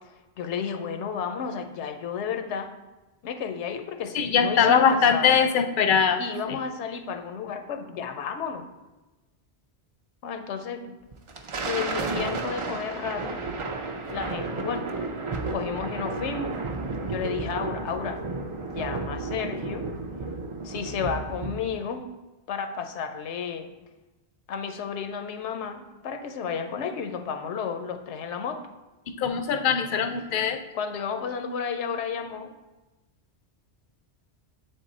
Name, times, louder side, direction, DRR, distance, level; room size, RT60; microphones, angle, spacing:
voice 1, 0.4-2.7 3.2-5.4 6.2-8.7 10.2-10.9 11.6-13.4 14.1-14.9 15.5-16.6 17.1-18.2 18.6-19.9 20.6-22.0 22.5-23.7 24.5-28.6 30.7-32.5, left 6 dB, 85° left, 7 dB, 0.9 m, -32 dB
voice 2, 4.1-6.2 6.5-6.6 29.2-30.6, left 7 dB, 60° left, 8 dB, 0.6 m, -21 dB
Thunder, 11.1-21.9, right 3 dB, 50° right, 0.4 m, -32 dB
7.7 x 3.7 x 4.0 m, 1.1 s
omnidirectional pair, 1.1 m